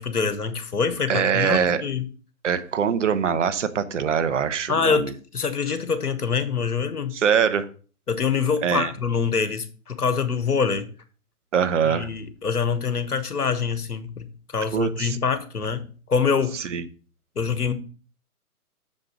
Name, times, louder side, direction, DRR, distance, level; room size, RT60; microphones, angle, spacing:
voice 1, 0.0-2.0 4.7-7.2 8.1-10.9 11.8-16.7 17.3-17.7, left 5 dB, 85° left, 1.4 m, -25 dB
voice 2, 1.1-1.8 2.4-5.1 7.1-7.7 8.6-8.9 11.5-12.1 14.7-15.2 16.5-16.8, right 7 dB, 55° right, 1.0 m, -23 dB
7.5 x 5.3 x 6.1 m
figure-of-eight pair, 135°, 44 cm